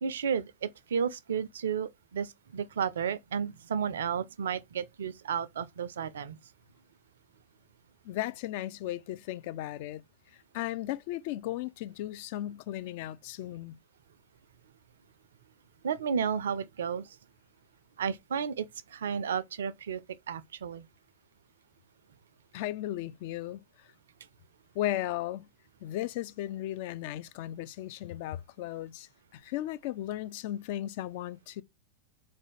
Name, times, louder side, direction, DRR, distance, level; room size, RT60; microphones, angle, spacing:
voice 1, 0.0-6.4 15.8-17.2 18.0-20.0 20.3-20.8, right 7 dB, 65° right, 0.4 m, -32 dB
voice 2, 8.0-10.0 10.3-13.8 22.5-23.9 24.7-25.5 25.8-31.6, left 14 dB, 50° left, 0.4 m, -36 dB
4.2 x 2.6 x 4.8 m
figure-of-eight pair, 90°, 0 cm